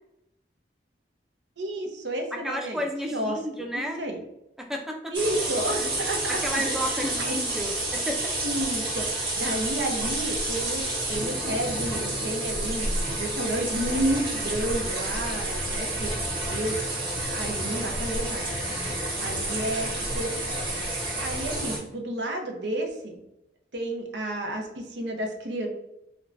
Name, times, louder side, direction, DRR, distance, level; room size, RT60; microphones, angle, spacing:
voice 1, 1.6-3.4 3.7-4.2 5.1-7.4 8.4-16.1 16.5-16.9 17.3-18.9 19.2-20.3 20.7-23.2 23.7-25.7, right 1 dB, 80° right, 2 dB, 0.7 m, -31 dB
voice 2, 2.3-4.0 4.6-5.1 6.3-8.4, equal, ahead, 2 dB, 0.3 m, -32 dB
sound 1, 5.1-21.8, right 1 dB, 25° right, 1.0 m, -29 dB
4.4 x 2.2 x 2.5 m, 0.86 s
head